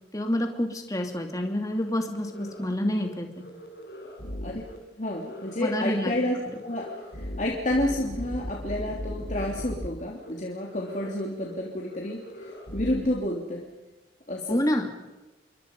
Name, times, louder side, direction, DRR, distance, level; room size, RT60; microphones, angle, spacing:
voice 1, 0.1-3.4 5.6-6.1 14.5-14.9, left 1 dB, 20° left, 4 dB, 2.7 m, -28 dB
sound 1, 1.7-1.8 2.2-2.7 2.9-3.1 3.4-4.8 5.1-5.6 5.9-6.0 6.3-9.9 10.2-10.3 10.6-11.1 11.4-11.5 11.8-13.1, equal, 60° left, 5.3 m, -39 dB
voice 2, 4.9-6.4 6.6-6.9 7.1-13.7 14.3-14.6, left 1 dB, 45° left, -2 dB, 3.2 m, -30 dB
28.0 x 23.5 x 5.5 m, 1.0 s
head